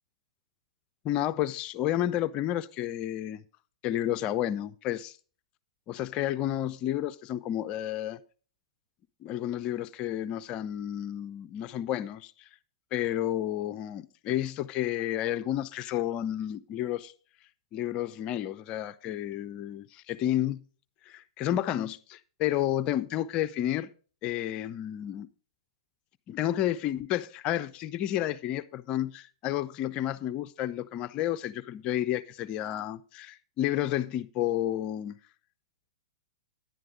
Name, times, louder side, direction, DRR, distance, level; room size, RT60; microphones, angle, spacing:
voice 1, 1.0-3.4 3.8-5.2 5.9-8.2 9.2-12.5 12.9-17.1 17.7-20.6 21.1-23.9 24.2-25.3 26.3-35.1, left 12 dB, 35° left, 0.5 m, -31 dB
10.5 x 9.2 x 3.8 m
hypercardioid pair, 115°, 3 cm